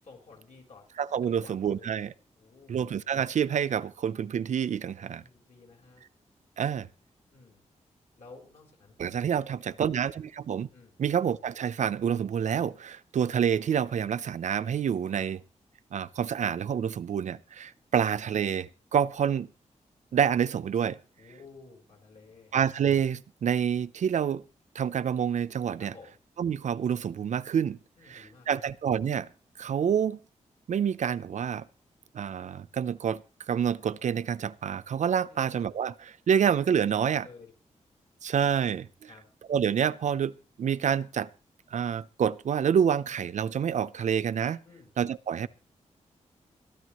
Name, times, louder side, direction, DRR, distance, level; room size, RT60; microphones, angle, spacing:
voice 1, 0.0-0.9 1.3-2.0 2.3-2.8 5.0-6.0 7.3-7.6 8.2-9.8 10.7-11.0 15.1-15.2 21.2-22.5 25.8-26.2 28.0-28.6 35.3-35.5 37.0-37.5 39.1-39.3 44.6-44.9, left 4 dB, 65° left, 4.3 m, -53 dB
voice 2, 1.0-2.1 2.7-5.2 6.6-6.9 9.0-10.7 11.0-15.4 15.9-19.5 20.1-21.0 22.5-24.4 24.7-25.9 26.4-27.8 28.1-29.3 29.6-30.2 30.7-31.6 32.1-33.2 33.5-37.3 38.2-38.9 39.5-41.3 41.7-44.6 45.0-45.5, right 8 dB, 70° right, 0.6 m, -27 dB
22.0 x 13.5 x 3.1 m
wide cardioid pair, 155°, 13 cm